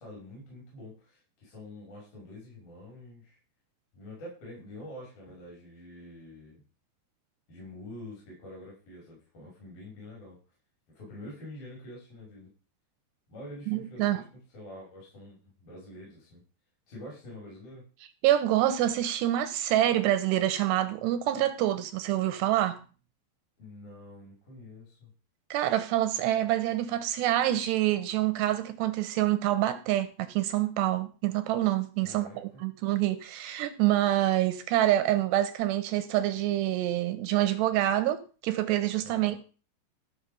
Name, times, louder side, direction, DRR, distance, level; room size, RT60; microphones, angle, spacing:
voice 1, 0.0-3.4 3.9-6.6 7.5-10.4 11.0-12.5 13.3-14.2 14.5-16.4 16.9-17.9 23.6-25.1 32.0-32.6 39.0-39.4, left 1 dB, 50° left, 7.3 m, -46 dB
voice 2, 13.7-14.2 18.2-22.8 25.5-39.4, right 13 dB, 80° right, 2.6 m, -26 dB
14.0 x 5.7 x 6.9 m
omnidirectional pair, 5.5 m